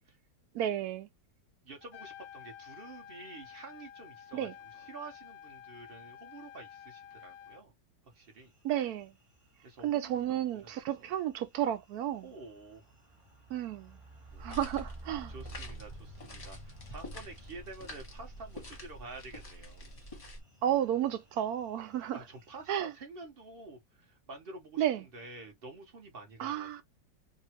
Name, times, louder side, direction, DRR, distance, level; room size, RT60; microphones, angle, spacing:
voice 1, 0.5-1.1 4.3-4.5 8.6-9.1 9.8-12.2 13.5-13.9 14.4-15.3 20.6-22.2 22.7-22.9 24.8-25.0 26.4-26.8, right 11 dB, 70° right, 0.9 m, -32 dB
voice 2, 1.6-7.7 8.0-8.5 9.6-10.9 12.2-12.9 14.3-14.6 15.3-19.8 22.0-26.8, right 3 dB, 40° right, 0.9 m, -49 dB
Trumpet, 1.8-7.6, left 9 dB, 70° left, 0.9 m, -51 dB
sound 1, 8.2-22.8, right 1 dB, 20° right, 1.3 m, -55 dB
sound 2, 14.3-20.4, equal, 25° left, 0.9 m, -46 dB
2.9 x 2.6 x 2.9 m
omnidirectional pair, 1.9 m